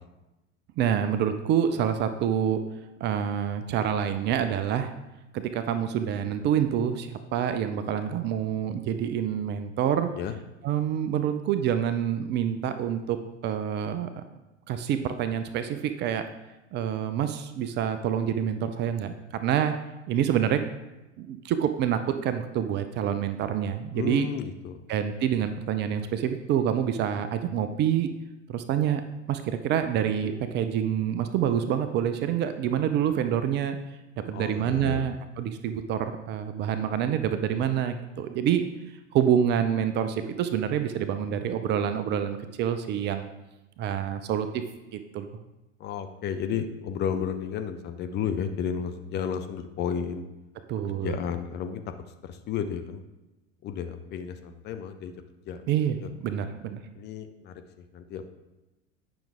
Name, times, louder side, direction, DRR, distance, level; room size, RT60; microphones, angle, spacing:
voice 1, 0.8-2.6 3.0-4.9 5.3-10.1 10.6-13.2 13.4-14.1 14.7-16.2 16.7-19.8 20.1-20.6 21.2-24.3 24.9-28.1 28.5-29.0 29.3-33.8 34.3-38.6 39.1-43.3 43.8-44.6 44.9-45.3 50.7-51.2 55.7-56.0 56.2-56.8, right 9 dB, 30° right, 9 dB, 0.4 m, -27 dB
voice 2, 23.9-24.8 34.3-35.1 45.8-50.2 51.0-51.8 52.2-53.0 53.6-55.1 55.5-55.6 56.0-56.1 57.0-57.6 57.9-58.3, left 7 dB, 30° left, 8 dB, 0.5 m, -32 dB
8.8 x 5.9 x 3.5 m, 1.0 s
figure-of-eight pair, 80°, 39 cm